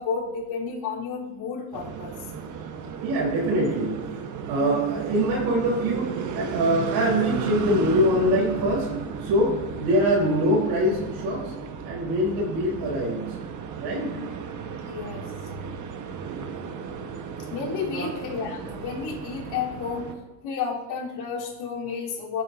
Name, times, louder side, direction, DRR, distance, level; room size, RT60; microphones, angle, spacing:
voice 1, 0.0-2.1 14.0-14.3 14.8-15.2 17.5-20.1 20.4-22.4, left 5 dB, 55° left, -5 dB, 3.8 m, -31 dB
sound 1, 1.7-20.1, right 6 dB, 40° right, 1.4 m, -34 dB
voice 2, 3.0-4.0 4.5-8.9 9.2-11.4 11.8-13.2 13.8-14.1 17.9-18.1, equal, 65° right, -6 dB, 4.3 m, -24 dB
15.5 x 8.7 x 2.8 m, 1.0 s
supercardioid pair, 95°, 47 cm